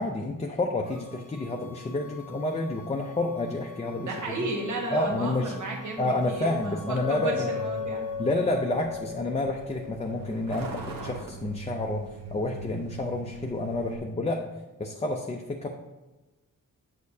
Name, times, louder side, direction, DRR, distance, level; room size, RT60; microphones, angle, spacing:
voice 1, 0.0-4.5 4.9-5.6 6.0-7.5 8.2-14.5 14.8-15.7, left 2 dB, 20° left, 2 dB, 0.4 m, -29 dB
sound 1, 0.8-9.0, left 5 dB, 15° right, 1.1 m, -50 dB
voice 2, 3.9-8.0, right 2 dB, 65° right, 0 dB, 1.3 m, -33 dB
Truck, 6.4-14.0, right 2 dB, 80° right, 1.1 m, -42 dB
Chink clink, 7.0-11.1, left 6 dB, 70° left, 0.6 m, -36 dB
8.3 x 6.5 x 2.7 m, 1.1 s
wide cardioid pair, 175°, 33 cm